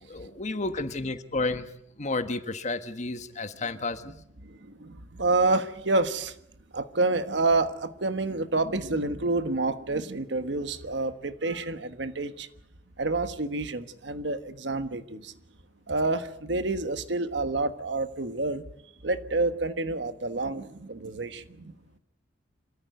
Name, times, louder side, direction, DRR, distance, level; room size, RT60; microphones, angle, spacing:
voice 1, 0.0-1.7 2.0-4.1, left 3 dB, 40° left, 10 dB, 1.3 m, -31 dB
voice 2, 4.4-6.4 6.7-12.5 13.0-15.3 15.9-18.6 19.0-21.7, right 2 dB, 65° right, 11 dB, 1.4 m, -28 dB
26.5 x 14.0 x 9.2 m, 0.76 s
head